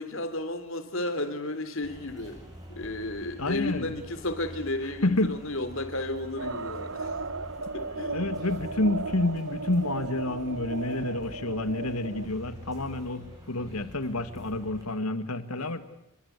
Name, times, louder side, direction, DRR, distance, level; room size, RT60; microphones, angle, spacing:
voice 1, 0.0-2.4 2.7-7.0 7.7-8.3 15.6-15.7, left 2 dB, 60° left, 10 dB, 3.4 m, -33 dB
sound 1, 1.8-14.8, equal, 15° right, 7.8 m, -46 dB
voice 2, 3.4-3.9 4.8-5.4 8.0-15.8, left 2 dB, 85° left, 11 dB, 2.1 m, -29 dB
sound 2, 6.4-12.3, right 3 dB, 60° right, 1.0 m, -36 dB
30.0 x 23.5 x 8.3 m, 0.83 s
head